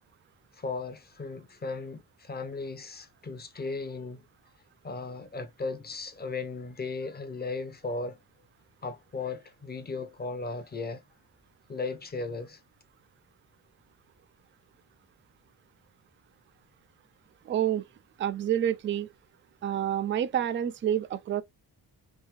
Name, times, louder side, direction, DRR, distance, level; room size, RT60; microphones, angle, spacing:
voice 1, 0.5-4.3 4.8-8.2 8.8-11.0 11.7-12.6, left 3 dB, 20° left, 0.7 m, -36 dB
voice 2, 17.5-17.8 18.2-19.1 19.6-21.4, right 10 dB, 30° right, 0.3 m, -28 dB
3.6 x 2.6 x 3.1 m
cardioid pair, 110°, 43 cm